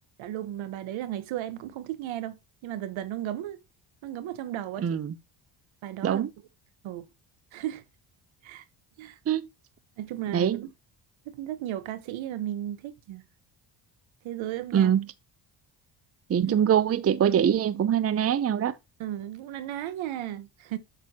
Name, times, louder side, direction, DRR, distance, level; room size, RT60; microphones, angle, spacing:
voice 1, 0.2-3.6 4.0-4.9 5.8-6.3 6.8-7.1 7.5-7.8 8.4-8.6 9.0-9.2 10.0-10.7 11.3-13.2 14.2-14.9 16.5-16.6 19.0-20.8, right 12 dB, 80° right, 1.2 m, -35 dB
voice 2, 4.8-5.1 6.0-6.3 9.3-9.4 10.3-10.6 14.7-15.1 16.3-18.7, right 9 dB, 30° right, 0.6 m, -23 dB
8.4 x 6.7 x 2.9 m
cardioid pair, 95°, 46 cm